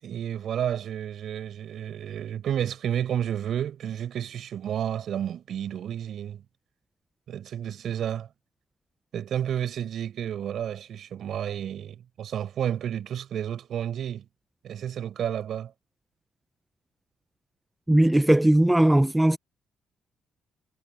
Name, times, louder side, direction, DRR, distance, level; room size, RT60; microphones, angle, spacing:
voice 1, 0.0-6.4 7.3-8.3 9.1-14.3 14.6-15.7, right 9 dB, 65° right, 7.1 m, -31 dB
voice 2, 17.9-19.4, right 1 dB, 10° right, 0.8 m, -19 dB
cardioid pair, 90°, 0 cm